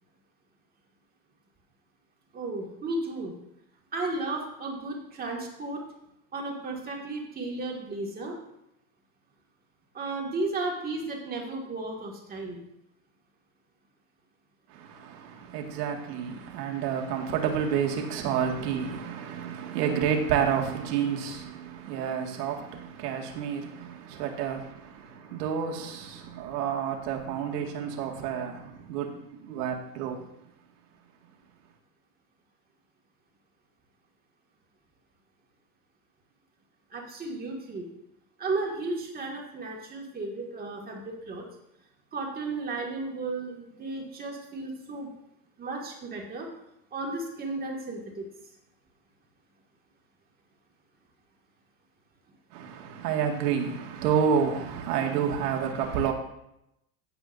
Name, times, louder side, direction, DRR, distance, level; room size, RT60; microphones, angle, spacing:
voice 1, 2.3-3.3 3.9-5.8 6.3-8.4 9.9-12.6 18.2-18.4 36.9-37.9 38.4-41.4 42.1-45.1 45.6-46.5 46.9-48.3, right 2 dB, 20° right, 2.1 m, -34 dB
voice 2, 14.7-30.3 52.5-56.1, right 7 dB, 70° right, 2.1 m, -30 dB
15.5 x 8.0 x 2.6 m
supercardioid pair, 150°, 49 cm